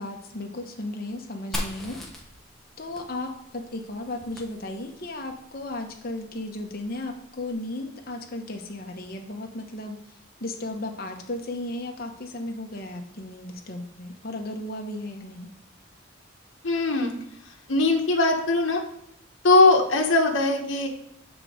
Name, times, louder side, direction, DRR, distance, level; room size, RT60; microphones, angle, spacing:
voice 1, 0.0-2.2 2.8-10.0 10.4-15.5, left 1 dB, 45° left, 3 dB, 1.1 m, -35 dB
Fire, 1.5-5.2, left 1 dB, ahead, 1.0 m, -38 dB
voice 2, 16.6-17.1 17.7-18.8 19.4-20.9, left 2 dB, 65° left, 1 dB, 1.3 m, -20 dB
8.2 x 4.0 x 5.0 m, 0.75 s
head